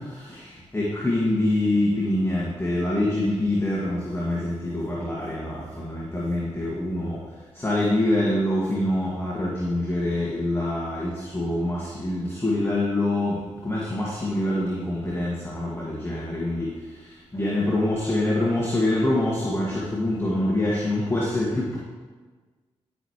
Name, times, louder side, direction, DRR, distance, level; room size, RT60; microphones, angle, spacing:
voice 1, 0.0-7.2 7.5-21.8, left 1 dB, 20° left, -5 dB, 2.0 m, -25 dB
12.0 x 6.2 x 3.2 m, 1.4 s
supercardioid pair, 45°, 12 cm